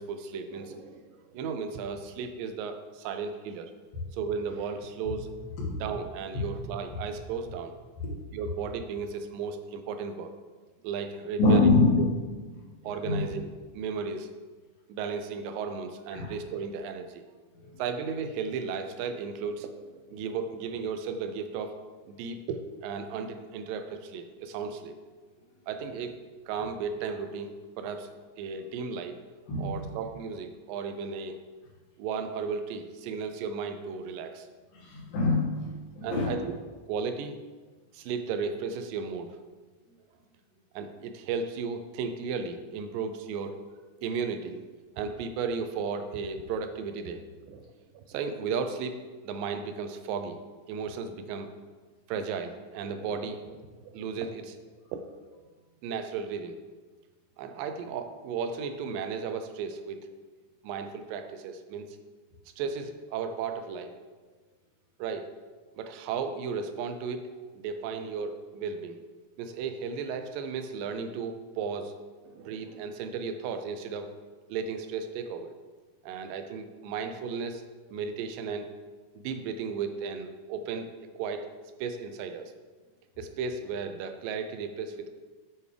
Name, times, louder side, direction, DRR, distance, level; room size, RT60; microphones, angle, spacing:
voice 1, 0.0-3.7 4.1-5.3 5.8-7.7 8.3-10.3 10.8-11.7 12.0-12.1 12.8-13.5 13.7-14.3 14.9-17.2 17.8-21.8 22.1-24.9 25.7-26.2 26.5-28.1 28.4-29.2 29.6-31.4 32.0-34.5 36.0-36.5 36.9-37.4 37.9-39.4 40.7-43.6 44.0-49.0 49.2-50.4 50.7-51.5 52.1-53.6 53.9-54.6 55.8-56.6 57.4-60.1 60.6-62.0 62.6-63.9 65.0-65.3 65.8-67.3 67.5-69.0 69.4-71.9 72.2-74.1 74.5-75.6 76.0-77.6 77.9-78.7 79.2-80.9 81.2-81.5 81.8-82.5 83.2-85.1, right 5 dB, 80° right, 8 dB, 2.2 m, -35 dB
voice 2, 11.4-12.0 12.6-12.7 13.0-13.2 16.1-16.3 17.6-17.7 29.5-29.7 34.7-36.3, left 3 dB, 75° left, -4 dB, 3.5 m, -24 dB
7.7 x 7.0 x 3.3 m, 1.3 s
omnidirectional pair, 4.1 m